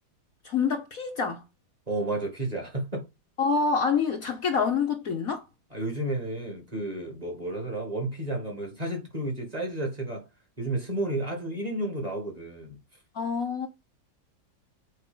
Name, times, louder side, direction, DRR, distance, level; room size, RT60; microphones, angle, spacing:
voice 1, 0.4-1.4 3.4-5.4 13.1-13.7, left 5 dB, 55° left, 1.2 m, -26 dB
voice 2, 1.9-3.0 5.7-10.3 10.6-12.8, right 2 dB, 20° right, 2.0 m, -32 dB
6.7 x 4.8 x 5.4 m
omnidirectional pair, 2.0 m